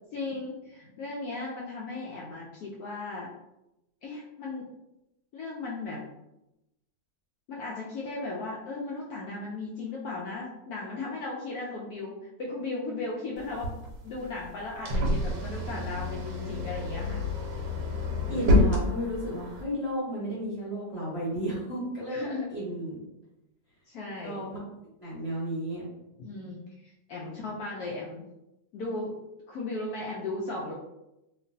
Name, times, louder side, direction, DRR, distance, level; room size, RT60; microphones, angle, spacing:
voice 1, 0.1-3.3 4.0-4.7 5.3-6.0 7.5-17.2 22.1-22.5 23.9-24.4 26.2-28.2 28.7-29.1 29.5-30.7, left 3 dB, 70° left, -3 dB, 0.9 m, -36 dB
sound 1, 13.4-19.6, left 2 dB, 80° right, 1.2 m, -28 dB
voice 2, 18.3-22.2 22.5-23.0 24.2-24.6 25.0-25.8 27.3-27.4, equal, 25° right, -10 dB, 0.8 m, -32 dB
2.9 x 2.5 x 2.6 m, 0.91 s
omnidirectional pair, 1.9 m